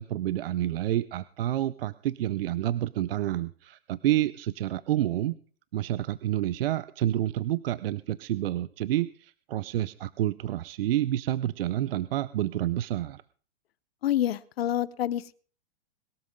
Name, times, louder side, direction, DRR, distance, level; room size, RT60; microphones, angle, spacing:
voice 1, 0.0-5.3 5.7-13.2, right 13 dB, 70° right, 17 dB, 0.7 m, -29 dB
voice 2, 14.0-15.3, left 12 dB, 75° left, 19 dB, 0.9 m, -27 dB
21.5 x 13.0 x 3.7 m, 0.42 s
supercardioid pair, 160°, 30 cm